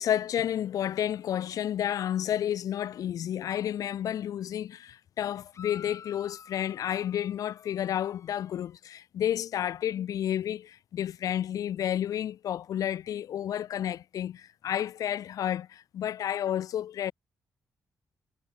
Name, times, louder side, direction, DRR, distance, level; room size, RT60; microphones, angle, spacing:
voice 1, 0.0-17.1, left 10 dB, 70° left, 0.4 m, -31 dB
sound 1, 5.5-8.8, left 7 dB, 50° left, 2.1 m, -51 dB
cardioid pair, 105°, 6 cm